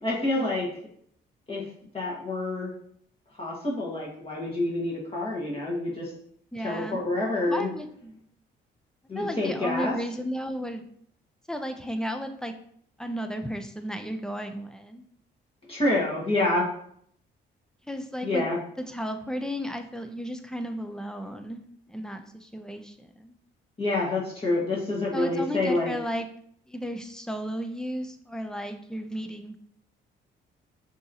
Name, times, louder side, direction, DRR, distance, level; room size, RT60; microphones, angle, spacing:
voice 1, 0.0-0.7 1.5-1.6 1.9-2.7 3.4-6.1 6.6-7.7 9.1-9.9 15.7-16.7 18.2-18.6 23.8-25.9, left 2 dB, 30° left, -5 dB, 1.5 m, -27 dB
voice 2, 6.5-7.0 7.4-8.2 9.1-10.8 11.5-12.5 13.0-15.0 17.9-18.4 18.9-21.6 21.9-23.4 25.1-26.3 26.7-29.6, equal, 5° left, 7 dB, 0.5 m, -34 dB
6.1 x 2.9 x 2.7 m, 0.65 s
cardioid pair, 90°, 20 cm